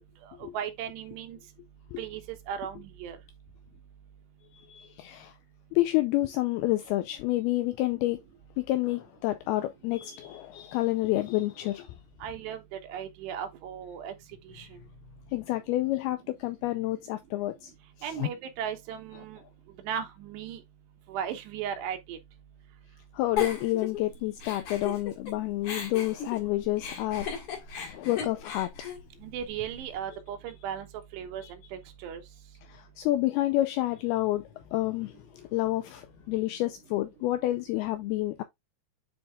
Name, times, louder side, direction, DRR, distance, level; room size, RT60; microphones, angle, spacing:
voice 1, 0.4-1.4 2.0-2.2 2.5-3.2 12.2-14.1 14.5-14.7 18.0-19.4 19.8-20.6 21.1-22.2 29.2-30.9 31.1-32.2, right 8 dB, 80° right, 3.3 m, -36 dB
voice 2, 4.7-5.3 5.7-8.2 8.6-12.0 15.3-17.7 18.0-18.3 23.1-27.4 27.7-28.7 31.4-31.5 32.7-38.4, left 16 dB, 90° left, 2.2 m, -29 dB
Giggle, 23.4-25.3 25.6-29.9, left 7 dB, 55° left, 2.6 m, -36 dB
9.8 x 4.4 x 2.3 m
omnidirectional pair, 5.0 m